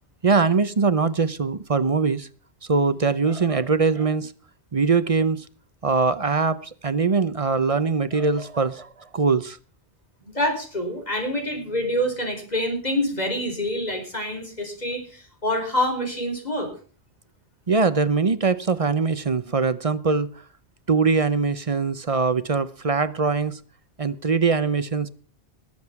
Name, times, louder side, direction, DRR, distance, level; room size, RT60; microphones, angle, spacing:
voice 1, 0.2-2.3 2.7-4.3 4.7-5.4 5.8-9.6 17.7-20.3 20.9-23.6 24.0-25.1, right 4 dB, 35° right, 0.7 m, -22 dB
voice 2, 10.2-16.7, left 1 dB, 40° left, 4.5 m, -26 dB
20.0 x 8.0 x 5.9 m
omnidirectional pair, 1.1 m